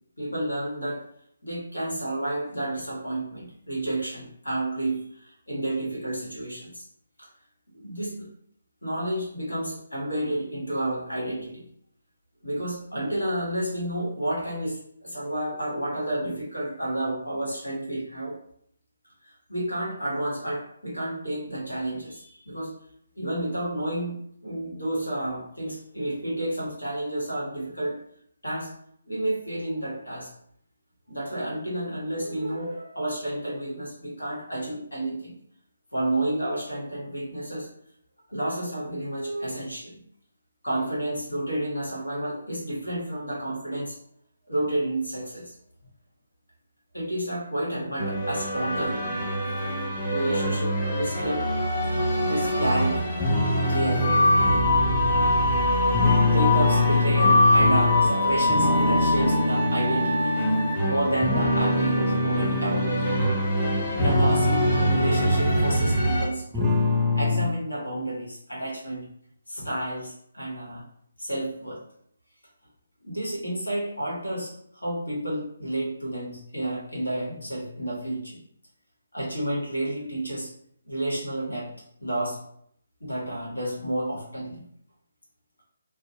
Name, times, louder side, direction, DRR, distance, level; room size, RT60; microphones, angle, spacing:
voice 1, 0.2-1.0 1.4-6.8 7.2-7.3 7.7-8.3 8.8-11.6 12.4-18.3 19.2-22.7 23.2-28.0 28.4-28.7 29.1-30.3 31.1-35.3 35.9-37.7 38.3-40.0 40.6-44.0 44.5-45.5 46.9-49.2 50.1-51.4 52.2-54.2 56.2-60.4 60.8-63.1 64.0-66.7 67.1-69.1 69.5-70.8 71.2-71.8 73.0-78.4 79.1-80.5 80.8-81.7 82.0-82.4 83.0-84.6, right 1 dB, 75° left, -4 dB, 1.2 m, -30 dB
sound 1, 48.0-66.3, left 1 dB, 10° left, 0.8 m, -24 dB
sound 2, 53.2-58.1 58.5-60.8 61.2-63.4 63.8-66.2 66.5-67.5, left 2 dB, 5° right, 0.3 m, -25 dB
2.5 x 2.1 x 2.7 m, 0.69 s
figure-of-eight pair, 145°, 0 cm